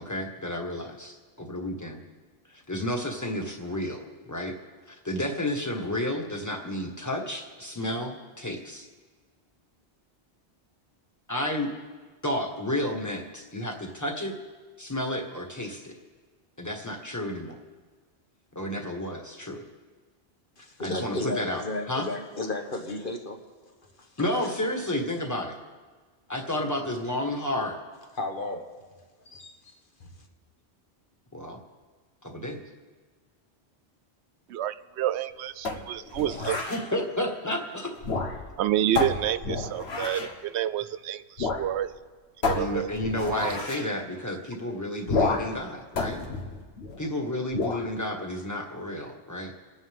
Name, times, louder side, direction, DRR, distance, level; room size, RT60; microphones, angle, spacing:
voice 1, 0.0-2.0 2.5-4.0 4.3-4.5 4.9-8.9 11.3-11.7 12.2-14.3 14.8-15.9 16.6-17.5 18.5-19.6 20.8-21.6 21.9-22.1 24.2-25.5 26.3-27.8 31.3-31.6 32.2-32.6 36.6-37.9 42.5-46.2 47.0-49.5, left 1 dB, 15° left, 1 dB, 1.8 m, -31 dB
voice 2, 20.6-23.4 24.2-24.6 28.2-28.7 29.3-29.7 30.0-30.1, left 2 dB, 50° left, 4 dB, 1.5 m, -34 dB
voice 3, 34.5-36.6 38.6-41.9 42.5-42.9 43.4-43.5, right 12 dB, 85° right, 14 dB, 0.9 m, -29 dB
sound 1, 35.6-36.9 38.0-38.6 39.0-40.4 41.4-41.7 41.9-42.0 42.4-43.9 45.1-45.6 46.0-47.1 47.5-47.9, left 3 dB, 70° left, 1.6 m, -30 dB
28.5 x 9.9 x 3.7 m, 1.4 s
omnidirectional pair, 1.1 m